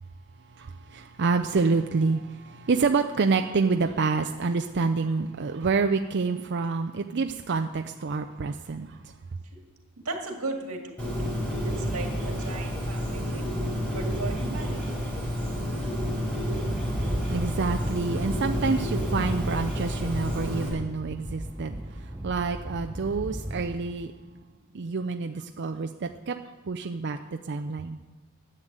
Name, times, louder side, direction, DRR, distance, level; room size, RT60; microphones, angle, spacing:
voice 1, 0.9-8.9 17.3-21.7 22.2-24.1 24.7-25.9 26.3-26.4 26.7-27.2 27.5-28.0, right 4 dB, 50° right, 5 dB, 0.5 m, -27 dB
voice 2, 10.0-11.3 11.8-13.5 13.9-14.8, right 3 dB, 75° right, 2 dB, 2.0 m, -36 dB
Bird, 11.0-20.7, equal, 5° left, 4.5 m, -30 dB
sound 1, 16.6-23.8, equal, 10° right, 0.7 m, -36 dB
11.0 x 7.8 x 8.1 m, 1.2 s
head